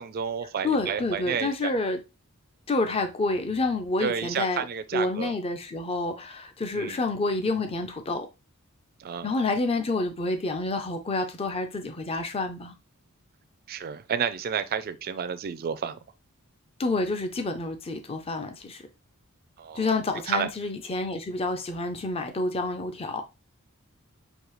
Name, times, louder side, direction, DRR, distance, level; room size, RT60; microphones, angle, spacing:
voice 1, 0.0-1.7 4.0-5.3 6.7-7.0 9.0-9.3 13.7-16.0 19.6-19.9 20.3-20.5, right 7 dB, 45° right, 0.4 m, -31 dB
voice 2, 0.6-2.0 2.7-4.6 4.9-8.3 9.2-12.7 16.8-18.8 19.7-23.2, left 2 dB, 25° left, 0.5 m, -28 dB
6.4 x 2.7 x 3.1 m
head